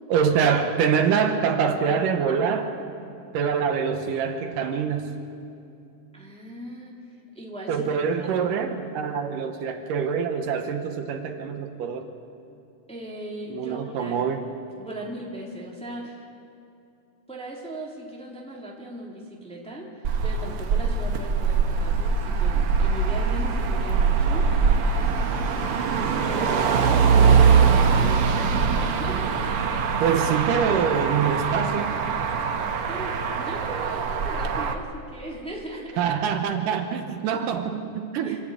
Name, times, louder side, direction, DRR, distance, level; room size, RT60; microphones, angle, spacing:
voice 1, 0.1-2.7 3.3-5.2 7.7-12.1 13.5-14.5 30.0-32.0 36.0-38.4, right 7 dB, 80° right, 6 dB, 2.7 m, -25 dB
voice 2, 6.1-7.0 7.3-8.3 12.9-14.2 14.8-16.2 17.3-24.8 26.2-29.4 32.9-36.0 37.2-37.4 38.2-38.4, right 1 dB, ahead, -3 dB, 2.5 m, -38 dB
Motor vehicle (road), 20.0-34.7, right 5 dB, 65° right, 1.4 m, -22 dB
sound 1, 21.7-27.0, left 1 dB, 60° left, 6.6 m, -47 dB
26.5 x 11.5 x 8.6 m, 2.7 s
omnidirectional pair, 3.8 m